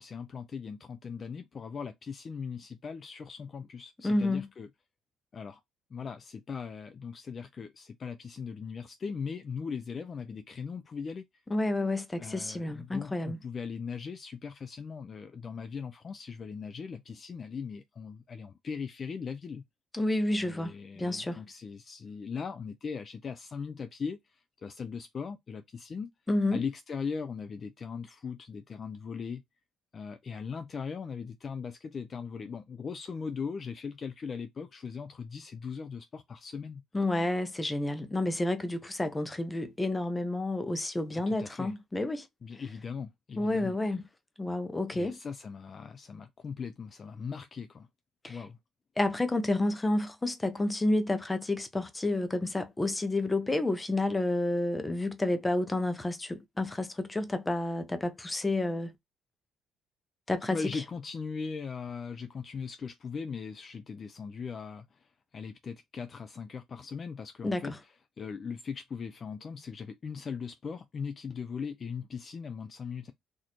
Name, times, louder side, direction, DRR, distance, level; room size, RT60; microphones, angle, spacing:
voice 1, 0.0-4.7 5.3-5.6 5.9-11.3 12.2-19.6 20.4-26.1 26.5-29.4 29.9-36.8 41.1-41.7 42.4-43.8 44.9-47.9 48.3-48.6 60.5-73.1, left 5 dB, 35° left, 0.4 m, -39 dB
voice 2, 4.0-4.5 11.5-13.4 19.9-21.4 26.3-26.6 36.9-42.3 43.4-44.0 44.4-45.2 48.2-48.4 49.0-58.9 60.3-60.6 67.4-67.8, left 2 dB, 15° left, 0.7 m, -30 dB
4.1 x 2.6 x 3.0 m
cardioid pair, 120°, 0 cm